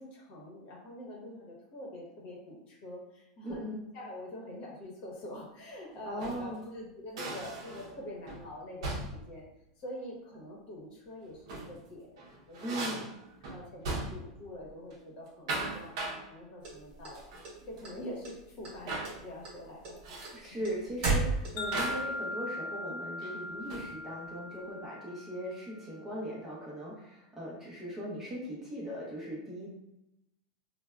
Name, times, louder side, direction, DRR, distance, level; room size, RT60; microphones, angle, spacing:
voice 1, 0.0-3.6 3.9-9.4 9.8-13.0 13.5-17.3 17.7-20.2 20.5-20.6, left 1 dB, 45° left, -2 dB, 0.9 m, -45 dB
voice 2, 3.4-3.8 6.0-6.6 12.6-13.1 20.3-29.7, equal, 10° right, -6 dB, 0.7 m, -39 dB
sound 1, 6.0-6.5 7.2-8.0 8.3-8.5 8.8-9.3 11.3-11.8 12.2-14.4 14.7-14.9 15.3-16.3 17.2-17.5 17.8-17.9 18.9-19.2 20.0-20.4 21.7-22.2 23.2-24.0, right 2 dB, 65° right, 0.6 m, -38 dB
sound 2, 16.6-17.9 18.2-18.8 19.0-21.9, right 3 dB, 40° right, 1.0 m, -32 dB
Wind chime, 21.6-25.9, left 1 dB, 65° left, 0.5 m, -40 dB
3.3 x 2.1 x 2.3 m, 0.86 s
supercardioid pair, 150°, 3 cm